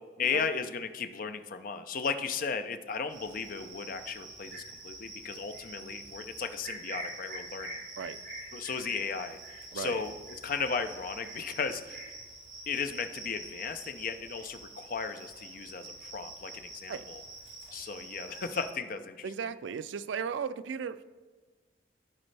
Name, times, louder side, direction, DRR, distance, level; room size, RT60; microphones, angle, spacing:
voice 1, 0.2-7.8 8.5-12.0 12.7-17.2 17.7-19.3, left 5 dB, 50° left, 9 dB, 0.5 m, -35 dB
Cricket, 3.1-18.7, right 2 dB, 45° right, 3.0 m, -46 dB
voice 2, 19.2-21.0, right 6 dB, 85° right, 14 dB, 0.4 m, -36 dB
15.5 x 5.2 x 3.3 m, 1.4 s
head